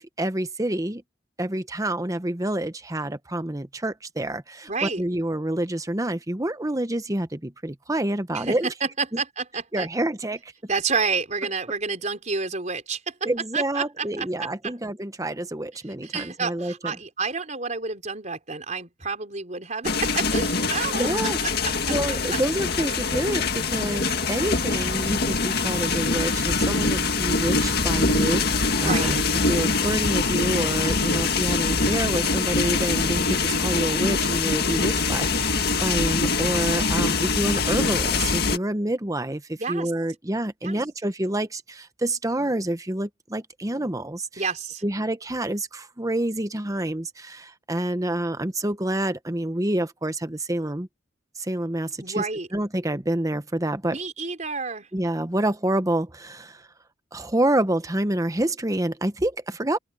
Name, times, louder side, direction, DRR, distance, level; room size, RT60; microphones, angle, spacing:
voice 1, 0.2-1.0 1.4-8.7 9.7-10.5 13.2-16.9 21.0-21.4 21.9-29.2 29.5-44.3 44.8-50.9 51.4-52.2 52.5-54.0 54.9-56.6 57.1-59.8, right 1 dB, 20° right, 1.0 m, -28 dB
voice 2, 4.7-5.0 8.3-9.9 10.7-14.7 16.0-21.1 21.6-21.9 22.3-22.4 28.7-29.2 39.6-39.9 40.6-40.8 44.4-44.8 52.0-52.5 53.9-54.9, right 4 dB, 40° right, 4.8 m, -29 dB
sound 1, 19.8-38.6, left 4 dB, 55° left, 1.9 m, -24 dB
open air
head